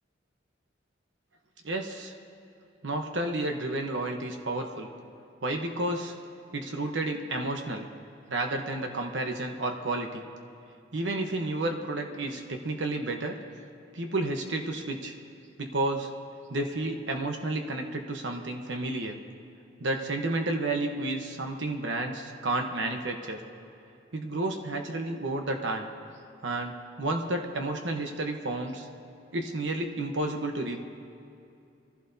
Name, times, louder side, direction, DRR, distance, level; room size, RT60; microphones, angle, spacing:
voice 1, 1.6-2.1 2.8-4.9 5.4-6.2 6.5-7.9 8.3-10.3 10.9-13.4 13.9-15.2 15.6-16.1 16.5-19.2 19.8-23.4 24.1-25.9 26.4-28.9 29.3-30.8, right 2 dB, 75° right, 3 dB, 1.1 m, -31 dB
24.0 x 15.5 x 2.8 m, 2.7 s
head